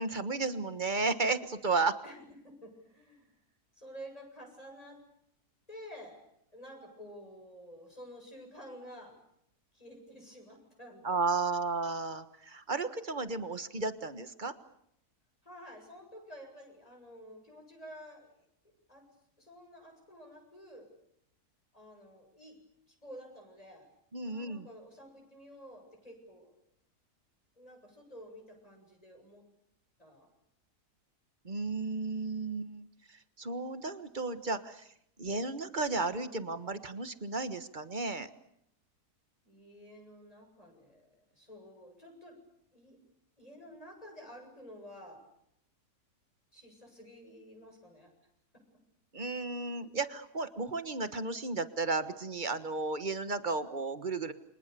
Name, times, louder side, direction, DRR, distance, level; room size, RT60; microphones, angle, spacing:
voice 1, 0.0-2.0 11.0-14.5 24.1-24.7 31.4-34.9 35.2-38.3 49.1-54.3, right 3 dB, 30° right, 11 dB, 1.5 m, -33 dB
voice 2, 2.0-3.3 3.7-5.0 5.7-6.2 6.5-9.2 9.7-11.2 13.5-13.6 15.4-18.3 18.9-19.0 19.4-20.9 21.7-22.6 22.9-23.9 24.2-26.6 27.6-29.4 30.0-30.3 39.4-42.4 42.7-43.0 43.4-45.2 46.5-48.1, equal, 20° left, 2 dB, 7.8 m, -51 dB
29.5 x 26.0 x 6.9 m, 0.76 s
omnidirectional pair, 1.7 m